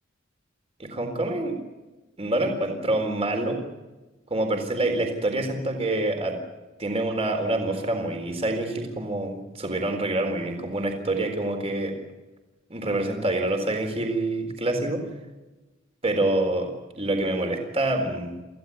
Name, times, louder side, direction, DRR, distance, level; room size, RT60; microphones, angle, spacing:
voice 1, 0.8-1.5 2.2-3.6 4.3-6.4 6.8-11.9 12.7-15.0 16.0-18.4, right 2 dB, 30° right, 4 dB, 4.0 m, -26 dB
27.0 x 15.5 x 8.5 m, 1.1 s
head